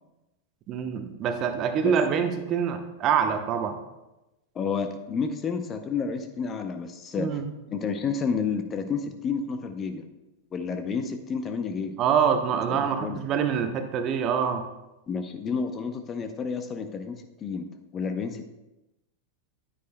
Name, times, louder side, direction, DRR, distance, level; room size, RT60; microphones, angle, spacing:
voice 1, 0.7-3.8 7.2-7.4 12.0-14.6, right 7 dB, 35° right, 7 dB, 0.8 m, -25 dB
voice 2, 4.5-7.4 7.7-10.1 10.5-12.0 12.7-13.2 15.1-17.7 17.9-18.5, left 5 dB, 25° left, 7 dB, 0.7 m, -30 dB
10.0 x 9.4 x 2.2 m, 0.98 s
figure-of-eight pair, 90°, 0 cm